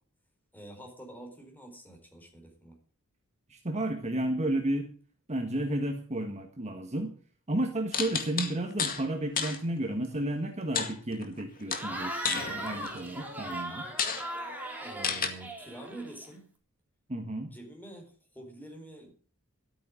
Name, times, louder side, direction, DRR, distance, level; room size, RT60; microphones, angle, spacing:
voice 1, 0.5-2.7 14.8-16.5 17.5-19.2, right 1 dB, 10° left, 2 dB, 4.5 m, -47 dB
voice 2, 3.5-4.9 5.3-7.1 7.5-13.9 17.1-17.5, right 1 dB, 30° right, 4 dB, 1.6 m, -32 dB
sound 1, 7.9-9.0 9.4-9.6 10.7-11.4 11.7-13.1 13.5-13.6 14.0-14.3 15.0-15.3, left 6 dB, 40° left, 2.1 m, -31 dB
Cheering / Crowd, 11.7-16.3, right 1 dB, 10° right, 3.5 m, -38 dB
13.0 x 9.0 x 7.5 m, 0.43 s
head